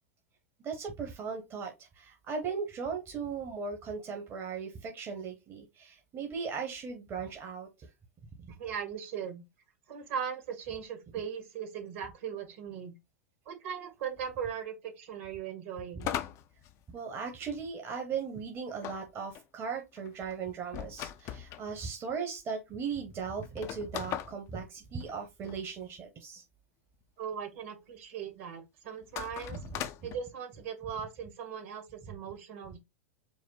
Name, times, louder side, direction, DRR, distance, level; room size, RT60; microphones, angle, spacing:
voice 1, 0.6-7.9 8.4-8.6 16.9-26.4 29.5-29.6, right 5 dB, 30° right, 1.0 m, -38 dB
voice 2, 8.6-9.4 9.9-12.9 13.4-16.1 27.2-29.6 30.0-32.8, right 7 dB, 60° right, 1.7 m, -39 dB
sound 1, 16.0-17.5 18.8-21.7 22.4-22.5 22.7-22.8 23.4-25.6 29.0-30.2, left 11 dB, 40° left, 0.5 m, -39 dB
5.1 x 2.1 x 3.9 m
hypercardioid pair, 100°, 8 cm